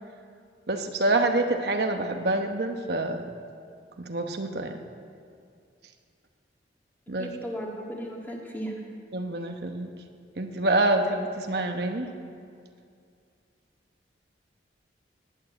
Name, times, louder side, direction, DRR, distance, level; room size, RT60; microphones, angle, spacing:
voice 1, 0.7-3.2 4.0-4.7 7.1-7.3 9.1-9.9 10.4-12.1, right 2 dB, 60° right, 4 dB, 1.0 m, -26 dB
voice 2, 7.2-8.8, equal, 10° left, -1 dB, 2.1 m, -35 dB
19.0 x 9.7 x 7.9 m, 2.3 s
head